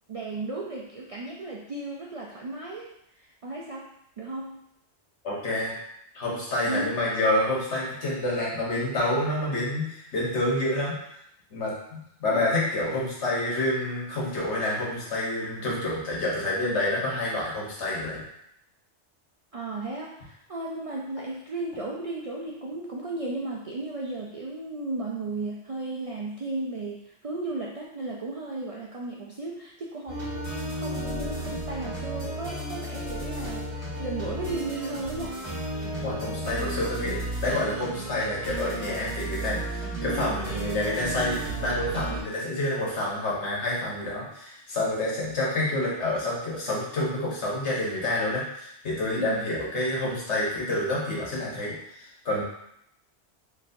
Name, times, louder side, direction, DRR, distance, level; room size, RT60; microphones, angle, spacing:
voice 1, 0.1-3.9 4.2-4.6 6.7-7.0 19.5-33.7 34.0-35.4 40.0-40.4 49.2-49.5, right 2 dB, 60° right, -3 dB, 0.3 m, -35 dB
voice 2, 5.2-5.7 6.1-11.0 11.5-18.2 36.0-52.4, left 1 dB, 90° left, -5 dB, 1.5 m, -28 dB
sound 1, 30.1-42.2, right 1 dB, 25° right, 1.1 m, -33 dB
4.2 x 3.1 x 2.6 m, 0.76 s
omnidirectional pair, 1.1 m